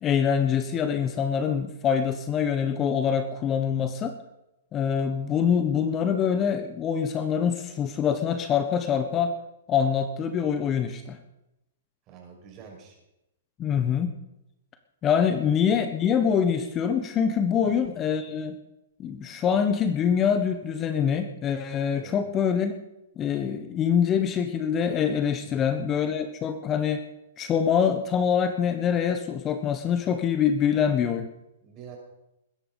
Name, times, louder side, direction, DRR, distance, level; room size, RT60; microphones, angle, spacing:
voice 1, 0.0-4.1 4.7-9.3 9.7-11.2 13.6-14.1 15.0-18.5 19.0-22.7 23.2-27.0 27.4-31.3, left 7 dB, 25° left, 9 dB, 1.2 m, -25 dB
voice 2, 12.1-13.0 15.3-15.6 17.6-17.7 21.9-22.1 25.4-25.7 31.6-32.0, right 7 dB, 35° right, 1 dB, 5.9 m, -46 dB
21.0 x 10.0 x 5.2 m, 0.89 s
hypercardioid pair, 120°, 0 cm